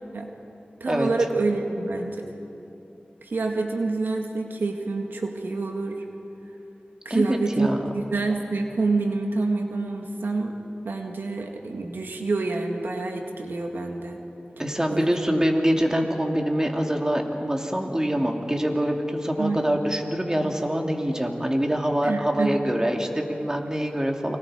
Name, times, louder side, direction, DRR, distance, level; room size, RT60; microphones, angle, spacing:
voice 1, 0.8-2.3 3.2-6.0 7.1-10.6 10.8-14.2 14.9-15.4 19.4-19.8 22.0-22.6, right 3 dB, 90° right, 2 dB, 1.9 m, -27 dB
voice 2, 7.1-7.8 14.6-24.4, equal, 20° right, 2 dB, 2.7 m, -25 dB
29.5 x 24.5 x 5.1 m, 2.9 s
wide cardioid pair, 50°, 3 cm